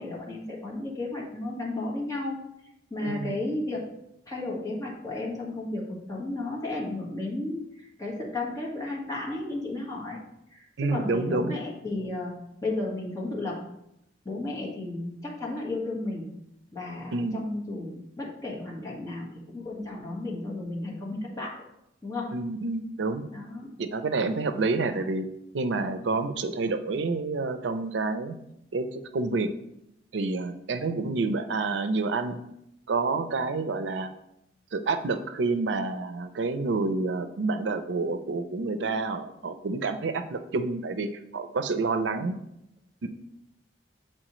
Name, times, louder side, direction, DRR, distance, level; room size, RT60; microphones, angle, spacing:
voice 1, 0.0-2.4 2.9-3.9 4.3-10.2 10.5-12.3 12.6-13.6 14.2-16.3 16.7-21.6 22.0-22.4 23.3-23.7 41.9-42.3, left 2 dB, 20° left, -4 dB, 1.5 m, -33 dB
voice 2, 3.0-3.3 10.8-11.5 17.1-17.4 22.3-23.3 23.8-25.3 25.5-28.3 28.7-29.5 30.1-32.4 32.9-34.1 34.7-42.4, right 3 dB, 85° right, 9 dB, 0.5 m, -28 dB
7.6 x 4.4 x 3.0 m, 0.80 s
head